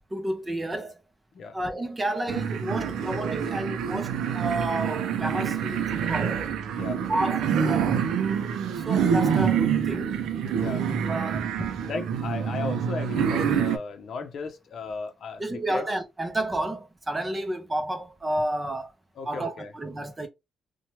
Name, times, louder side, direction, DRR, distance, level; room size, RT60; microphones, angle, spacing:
voice 1, 0.1-1.0 1.5-6.4 7.1-10.1 11.0-11.7 15.4-18.9 19.2-20.3, right 1 dB, 20° right, 0.6 m, -31 dB
sound 1, 2.3-13.8, right 7 dB, 80° right, 0.5 m, -26 dB
voice 2, 11.9-15.8 19.2-19.7, left 4 dB, 60° left, 0.6 m, -35 dB
2.8 x 2.2 x 3.0 m
cardioid pair, 90°, 0 cm